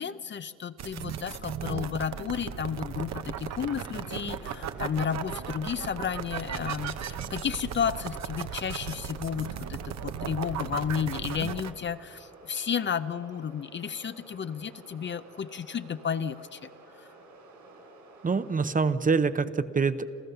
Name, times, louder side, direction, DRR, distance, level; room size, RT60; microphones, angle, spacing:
voice 1, 0.0-16.7 17.0-17.1, left 7 dB, 40° left, 13 dB, 0.6 m, -32 dB
sound 1, 0.8-11.7, right 8 dB, 60° right, 1.0 m, -36 dB
sound 2, 3.5-18.8, right 2 dB, 80° right, 6.5 m, -52 dB
voice 2, 18.2-20.0, right 4 dB, 25° right, 13 dB, 0.8 m, -25 dB
27.5 x 15.0 x 6.8 m, 2.5 s
cardioid pair, 90°, 30 cm